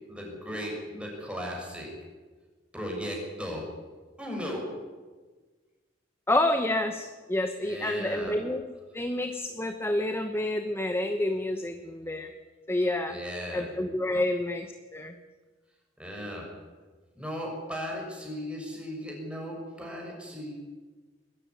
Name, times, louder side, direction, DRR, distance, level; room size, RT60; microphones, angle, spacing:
voice 1, 0.1-1.9 2.7-3.7 4.2-4.7 7.6-8.4 13.1-13.7 14.1-14.2 16.0-16.5 17.1-20.5, equal, 5° right, 0 dB, 6.2 m, -36 dB
voice 2, 6.3-8.7 8.9-12.3 12.7-13.2 13.5-15.1, left 1 dB, 15° left, 7 dB, 1.0 m, -29 dB
22.0 x 13.0 x 9.8 m, 1.4 s
head